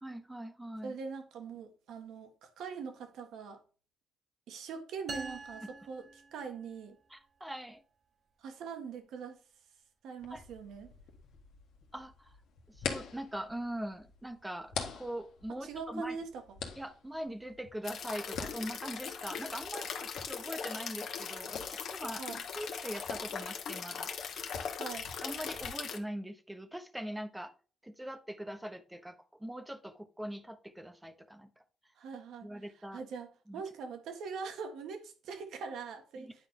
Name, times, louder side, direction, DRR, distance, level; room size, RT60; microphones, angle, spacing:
voice 1, 0.0-0.9 7.1-7.8 10.3-10.4 11.9-12.4 12.7-16.2 16.8-22.2 22.5-24.7 25.2-27.5 27.8-31.6 32.4-33.0 33.5-33.6 36.2-36.3, right 1 dB, 10° right, 0.9 m, -42 dB
voice 2, 0.8-3.6 4.5-7.0 8.4-9.4 10.0-10.9 15.6-16.4 22.2-22.4 24.8-25.1 32.0-32.5 32.9-36.3, right 5 dB, 80° right, 1.5 m, -42 dB
sound 1, 5.1-6.9, right 3 dB, 40° right, 1.1 m, -44 dB
sound 2, 10.2-25.7, left 6 dB, 85° left, 1.5 m, -46 dB
sound 3, 17.8-26.0, left 6 dB, 65° left, 1.2 m, -40 dB
9.7 x 4.3 x 3.7 m
cardioid pair, 90°, 0 cm